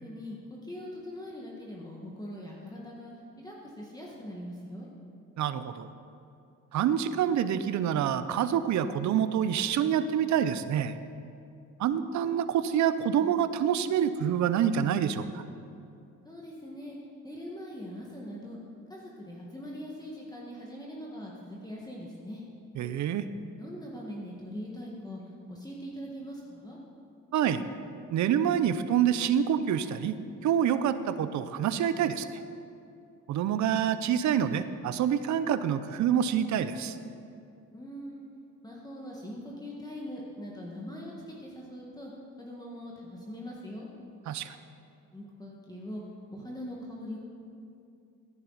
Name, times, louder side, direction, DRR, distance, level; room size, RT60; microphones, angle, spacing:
voice 1, 0.0-3.1 3.4-4.9 16.2-16.9 17.2-18.6 18.9-22.4 23.6-25.2 25.5-26.8 37.7-38.3 38.6-42.1 42.4-43.9 45.1-46.0 46.3-47.2, equal, 15° left, -3 dB, 1.6 m, -41 dB
voice 2, 5.4-5.9 6.7-10.9 11.8-15.4 22.8-23.3 27.3-27.6 28.1-30.2 30.4-32.4 33.3-37.0 44.3-44.6, right 9 dB, 70° right, 12 dB, 0.6 m, -27 dB
15.0 x 10.0 x 4.0 m, 2.6 s
cardioid pair, 90°, 30 cm